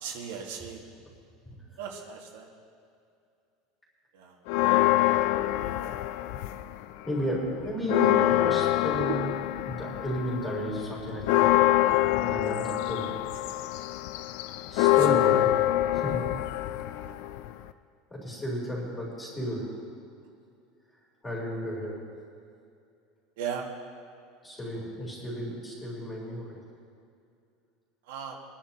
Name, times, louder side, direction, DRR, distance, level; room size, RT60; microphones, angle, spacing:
voice 1, 0.0-0.8 1.8-2.5 4.1-4.3 23.4-23.7 28.1-28.3, right 7 dB, 75° right, -1 dB, 1.9 m, -36 dB
sound 1, 4.5-6.8 7.2-17.7, left 15 dB, 55° left, 0.4 m, -25 dB
voice 2, 7.0-9.3 9.6-11.5 12.2-13.1 13.9-14.0 14.7-15.5 15.9-16.2 18.1-19.8 21.2-22.0 24.4-26.6, equal, 10° left, -5 dB, 3.6 m, -33 dB
23.5 x 10.5 x 3.0 m, 2.5 s
supercardioid pair, 170°, 0 cm